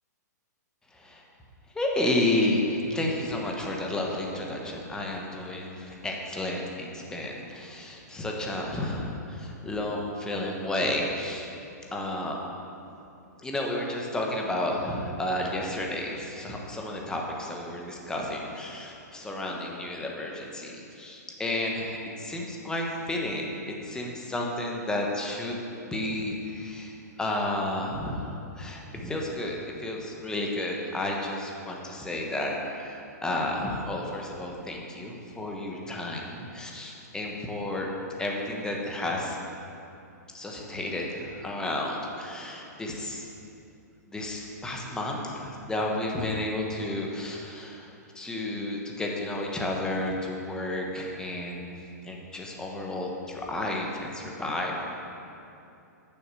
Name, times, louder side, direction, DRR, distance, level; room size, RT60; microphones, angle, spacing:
voice 1, 1.7-11.5 11.9-12.4 13.4-25.6 25.9-37.9 38.2-39.4 40.3-43.3 44.1-51.6 52.0-54.9, left 1 dB, 5° left, -1 dB, 1.2 m, -32 dB
9.2 x 7.1 x 6.2 m, 2.7 s
hypercardioid pair, 145°, 10 cm